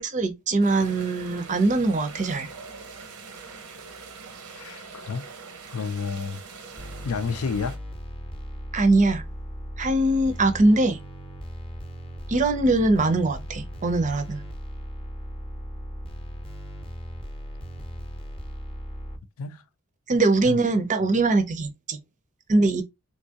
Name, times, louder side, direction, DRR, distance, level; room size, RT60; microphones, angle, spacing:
voice 1, 0.0-2.5 8.7-9.2 9.8-11.0 12.3-14.4 20.1-22.0 22.5-22.8, right 2 dB, 35° right, 0.6 m, -22 dB
sound 1, 0.6-7.8, right 4 dB, 80° right, 0.8 m, -43 dB
voice 2, 4.5-5.3 5.7-6.4 7.0-7.8 19.4-19.6 20.5-20.6, left 5 dB, 65° left, 0.4 m, -30 dB
sound 2, 6.8-19.2, equal, 25° left, 0.7 m, -37 dB
3.5 x 2.7 x 2.8 m
head